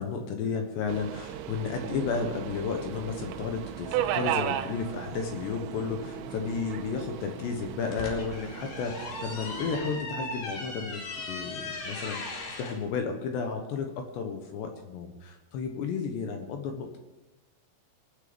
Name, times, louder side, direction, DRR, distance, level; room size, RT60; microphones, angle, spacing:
voice 1, 0.0-17.0, left 5 dB, 70° left, 5 dB, 3.0 m, -33 dB
Subway metro underground, 0.9-10.0, right 12 dB, 85° right, 3.4 m, -36 dB
sound 1, 1.2-8.0, right 2 dB, 40° right, 2.3 m, -47 dB
sound 2, 7.6-12.8, left 2 dB, 50° left, 3.5 m, -38 dB
23.0 x 9.2 x 5.2 m, 1.1 s
omnidirectional pair, 5.9 m